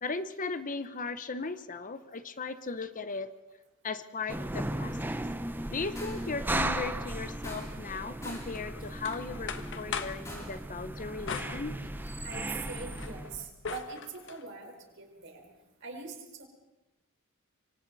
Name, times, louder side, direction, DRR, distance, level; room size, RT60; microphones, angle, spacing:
voice 1, 0.0-3.3 3.8-5.2 5.7-11.8, left 4 dB, 40° left, 12 dB, 0.9 m, -37 dB
sound 1, 4.3-13.5, right 1 dB, 10° right, 0.8 m, -36 dB
sound 2, 6.0-6.4 7.4-8.0 8.2-8.6 10.2-10.7, left 1 dB, 15° left, 4.6 m, -45 dB
sound 3, 8.5-10.3 11.3-12.3 12.7-14.4, left 6 dB, 60° left, 1.4 m, -40 dB
voice 2, 12.2-15.5 15.8-16.4, right 5 dB, 60° right, 2 dB, 4.7 m, -43 dB
26.5 x 24.0 x 4.1 m, 1.0 s
head